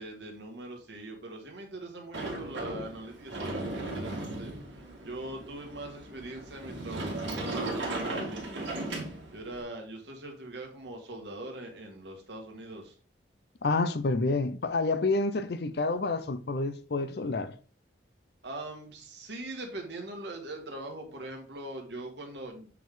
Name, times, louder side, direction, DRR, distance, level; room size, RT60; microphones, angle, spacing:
voice 1, 0.0-8.7 9.3-12.9 18.4-22.7, right 2 dB, 70° right, 1.8 m, -42 dB
Sliding door, 2.1-9.6, right 2 dB, 85° right, 2.1 m, -36 dB
voice 2, 13.6-17.5, left 3 dB, 60° left, 0.6 m, -28 dB
7.6 x 3.6 x 3.8 m
head